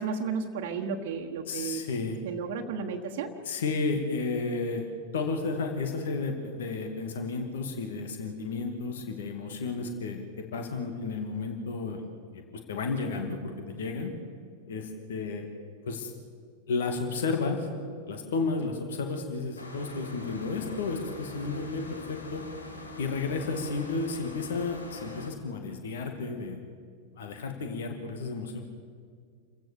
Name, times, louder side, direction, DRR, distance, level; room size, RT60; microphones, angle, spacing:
voice 1, 0.0-1.8 2.2-3.4, right 5 dB, 50° right, 1 dB, 1.4 m, -33 dB
voice 2, 1.5-2.2 3.4-4.9 5.1-14.1 14.7-15.5 15.9-16.1 16.7-17.7 18.1-22.4 23.0-26.6 27.2-28.6, left 4 dB, 60° left, 5 dB, 2.4 m, -32 dB
sound 1, 19.6-25.3, left 2 dB, 80° left, 2.3 m, -43 dB
28.5 x 15.5 x 7.0 m, 2.1 s
figure-of-eight pair, 90°, 0 cm